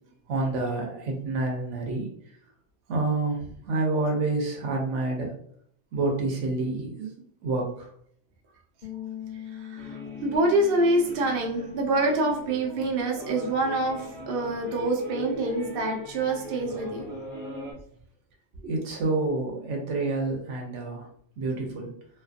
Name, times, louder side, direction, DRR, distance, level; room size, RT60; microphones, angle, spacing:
voice 1, 0.0-2.1 2.9-5.3 5.9-7.9 18.7-21.1 21.4-21.9, right 3 dB, 80° right, 0 dB, 1.0 m, -28 dB
sound 1, 8.8-15.1, left 11 dB, 50° left, 0.9 m, -44 dB
voice 2, 9.5-17.0 18.6-18.7, right 2 dB, 60° right, 0 dB, 0.7 m, -26 dB
sound 2, 9.8-17.7, equal, 20° right, 1.0 m, -41 dB
2.5 x 2.5 x 2.4 m, 0.64 s
omnidirectional pair, 1.2 m